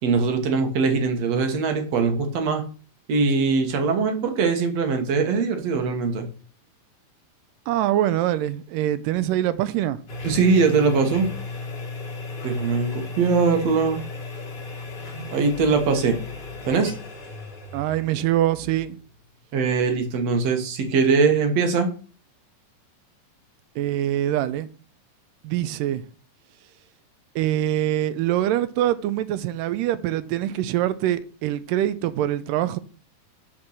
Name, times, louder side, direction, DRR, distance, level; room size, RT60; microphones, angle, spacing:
voice 1, 0.0-2.6 3.1-6.3 10.2-11.3 12.4-14.0 15.3-16.2 16.7-16.9 19.5-21.9, right 4 dB, 60° right, 2.2 m, -21 dB
voice 2, 7.7-10.0 17.7-19.0 23.8-24.7 25.4-26.0 27.4-32.8, right 12 dB, 90° right, 2.2 m, -24 dB
sound 1, 10.1-19.2, left 3 dB, 75° left, 0.5 m, -35 dB
8.2 x 4.4 x 6.4 m
omnidirectional pair, 3.8 m